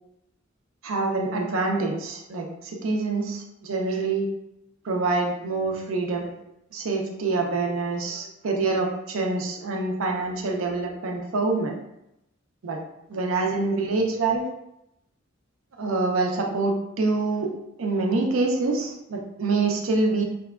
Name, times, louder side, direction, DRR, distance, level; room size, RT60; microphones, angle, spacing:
voice 1, 0.8-4.3 4.8-6.3 6.7-11.7 12.6-12.8 13.1-14.4 15.8-17.5 17.8-20.2, right 3 dB, 85° right, 1 dB, 0.5 m, -26 dB
2.8 x 2.2 x 2.3 m, 0.84 s
head